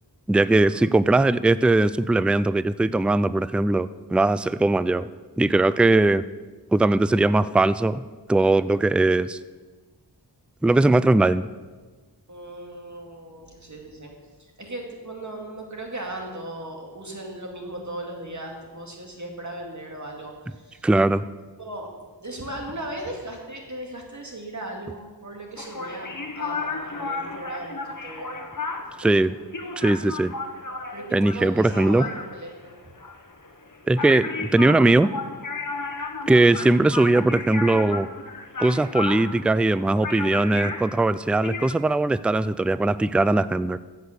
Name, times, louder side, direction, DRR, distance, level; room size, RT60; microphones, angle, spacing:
voice 1, 0.3-5.1 5.4-6.2 6.7-8.0 8.3-9.4 10.6-11.5 20.8-21.2 29.0-29.3 29.8-30.3 31.1-32.1 33.9-35.1 36.3-38.1 38.6-43.8, right 2 dB, 5° right, 16 dB, 0.3 m, -20 dB
voice 2, 12.3-14.1 14.4-20.9 21.6-21.9 22.2-28.4 29.0-29.1 30.9-32.8, right 1 dB, 45° right, 0 dB, 2.4 m, -37 dB
sound 1, 25.6-41.7, left 3 dB, 50° left, 1.3 m, -33 dB
14.5 x 8.3 x 6.7 m, 1.3 s
wide cardioid pair, 60°, 41 cm